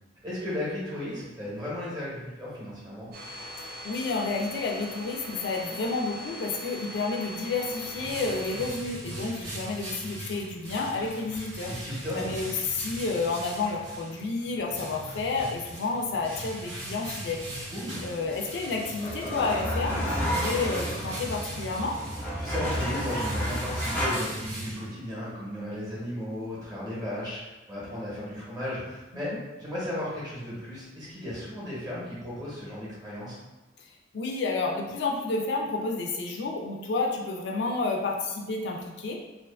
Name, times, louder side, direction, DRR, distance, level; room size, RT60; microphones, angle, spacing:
voice 1, 0.2-3.1 11.7-12.3 17.7-18.1 22.4-33.4, left 1 dB, 20° right, -8 dB, 0.8 m, -35 dB
Domestic sounds home sounds, 3.1-8.7, equal, 55° right, 0.4 m, -41 dB
voice 2, 3.8-11.7 12.1-17.5 18.0-22.1 29.1-29.4 34.1-39.2, left 3 dB, 70° left, 0 dB, 0.3 m, -30 dB
sound 1, 7.5-25.3, right 1 dB, 90° right, 0.8 m, -40 dB
sound 2, 18.2-24.1, equal, 10° left, 0.5 m, -31 dB
2.4 x 2.3 x 2.3 m, 1.1 s
head